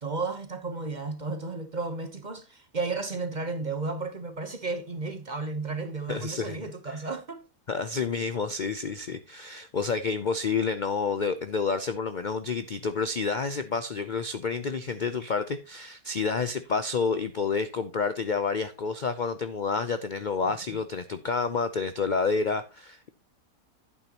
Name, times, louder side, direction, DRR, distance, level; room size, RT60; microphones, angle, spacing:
voice 1, 0.0-7.4 20.4-20.8, right 3 dB, 35° right, 0.9 m, -33 dB
voice 2, 6.1-6.6 6.9-7.0 7.7-23.1, left 5 dB, 55° left, 0.5 m, -29 dB
11.0 x 8.9 x 2.9 m
omnidirectional pair, 1.6 m